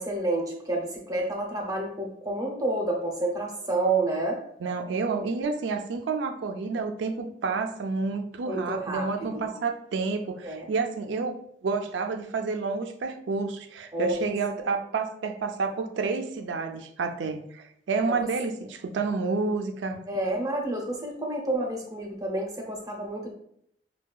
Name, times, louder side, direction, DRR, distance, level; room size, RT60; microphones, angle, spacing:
voice 1, 0.0-4.4 8.4-9.5 10.4-10.7 13.9-14.1 18.1-18.3 20.1-23.3, right 2 dB, 20° right, 0 dB, 0.6 m, -29 dB
voice 2, 4.6-20.0, right 4 dB, 80° right, 6 dB, 0.4 m, -29 dB
4.5 x 2.2 x 2.3 m, 0.70 s
head